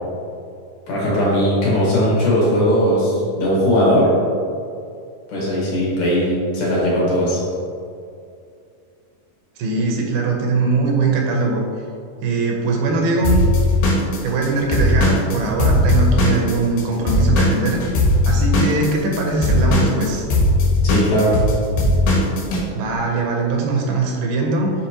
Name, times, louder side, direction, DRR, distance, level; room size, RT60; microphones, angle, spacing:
voice 1, 0.9-4.1 5.3-7.4 20.8-21.3, equal, 65° left, -7 dB, 2.8 m, -18 dB
voice 2, 9.6-11.6 12.2-13.4 14.2-17.8 18.3-20.3 22.7-24.7, right 3 dB, 80° right, 0 dB, 2.6 m, -21 dB
Drum kit / Drum, 13.2-16.8 17.1-22.6, left 1 dB, 90° left, 3.1 m, -17 dB
6.7 x 5.0 x 2.9 m, 2.4 s
omnidirectional pair, 4.3 m